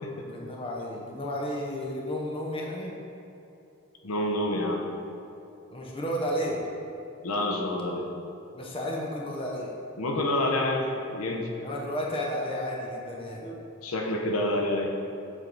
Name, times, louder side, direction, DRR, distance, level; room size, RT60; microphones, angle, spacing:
voice 1, 0.3-2.9 5.7-6.6 8.5-9.7 11.6-13.6, equal, 25° left, -2 dB, 0.5 m, -32 dB
voice 2, 4.0-4.9 7.2-8.1 10.0-11.5 13.8-14.9, left 1 dB, 80° left, 1 dB, 0.7 m, -28 dB
7.3 x 3.4 x 3.9 m, 2.8 s
head